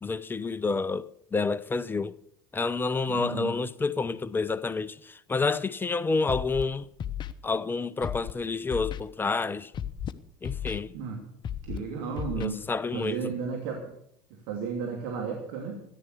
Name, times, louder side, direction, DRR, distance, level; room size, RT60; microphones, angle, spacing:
voice 1, 0.0-2.1 2.5-6.9 7.4-9.7 10.4-10.9 12.4-13.2, left 4 dB, 15° left, 0.8 m, -29 dB
voice 2, 3.1-3.6 10.9-11.2 11.7-12.6 12.9-13.9 14.5-15.8, right 5 dB, 70° right, 2.8 m, -33 dB
Scratching (performance technique), 6.3-6.6 7.0-7.3 8.0-8.3 8.7-9.0 9.7-10.1 10.4-10.8 11.4-11.8 12.2-12.5, left 9 dB, 40° left, 1.0 m, -33 dB
14.0 x 10.5 x 6.9 m
hypercardioid pair, 75°, 12 cm